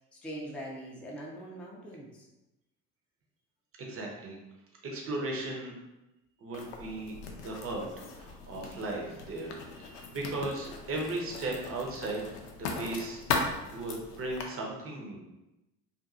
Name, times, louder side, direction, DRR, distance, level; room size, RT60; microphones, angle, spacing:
voice 1, 0.1-2.3, right 1 dB, 5° left, -4 dB, 0.5 m, -42 dB
voice 2, 3.8-4.4 4.8-5.7 6.4-7.9 8.1-12.2 12.5-15.2, right 2 dB, 30° right, -1 dB, 0.7 m, -37 dB
Writing, 6.5-14.4, left 4 dB, 75° left, 0.5 m, -38 dB
2.5 x 2.5 x 2.5 m, 0.97 s
figure-of-eight pair, 55°, 47 cm